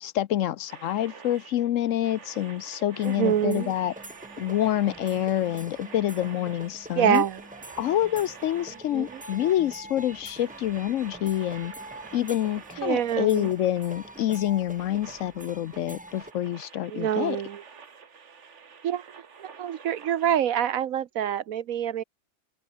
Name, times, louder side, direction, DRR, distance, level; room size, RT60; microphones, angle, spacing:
voice 1, 0.0-3.9 4.4-7.2 7.8-11.7 12.1-17.4, left 12 dB, 65° left, 0.9 m, -27 dB
sound 1, 0.7-20.4, right 6 dB, 50° right, 1.7 m, -48 dB
sound 2, 3.0-16.3, right 1 dB, 5° right, 1.2 m, -45 dB
voice 2, 3.0-3.7 7.0-7.4 8.9-9.2 12.8-13.5 16.9-17.6 18.8-22.0, right 10 dB, 65° right, 1.2 m, -26 dB
omnidirectional pair, 1.6 m